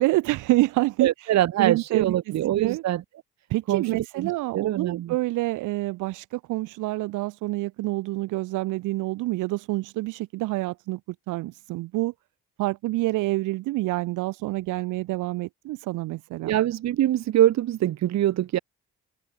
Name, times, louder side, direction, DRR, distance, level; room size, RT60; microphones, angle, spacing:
voice 1, 0.0-1.1 1.6-2.2 2.5-2.8 3.5-11.0 11.3-12.1 12.6-16.6, right 19 dB, 90° right, 0.7 m, -27 dB
voice 2, 1.0-3.0 3.7-5.1 16.4-18.6, right 13 dB, 65° right, 0.9 m, -24 dB
open air
cardioid pair, 90°, 30 cm